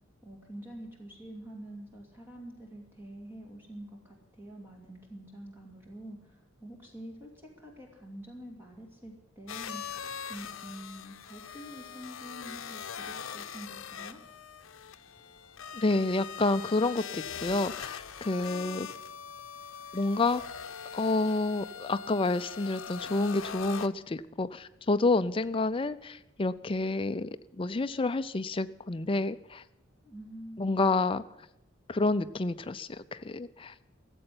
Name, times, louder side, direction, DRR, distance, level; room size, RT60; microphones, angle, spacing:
voice 1, 0.2-9.8 10.3-14.2 30.0-30.8, right 1 dB, 10° right, -1 dB, 2.5 m, -46 dB
sound 1, 9.5-23.9, left 7 dB, 75° left, 0.7 m, -42 dB
voice 2, 15.7-18.9 19.9-20.4 20.9-27.3 27.6-29.6 30.6-31.2 31.9-33.7, left 2 dB, 25° left, 12 dB, 0.5 m, -29 dB
14.5 x 7.8 x 9.7 m, 0.87 s
head